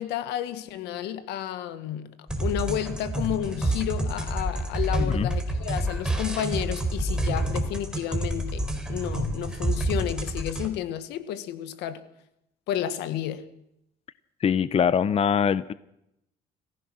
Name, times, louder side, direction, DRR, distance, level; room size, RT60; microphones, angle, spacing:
voice 1, 0.0-2.1 2.4-12.0 12.7-13.5, left 11 dB, 90° left, 1.6 m, -31 dB
sound 1, 2.3-10.7, right 1 dB, 5° right, 4.1 m, -28 dB
voice 2, 5.0-5.3 14.4-15.7, left 7 dB, 35° left, 0.7 m, -23 dB
29.0 x 15.0 x 6.3 m
cardioid pair, 110°, 17 cm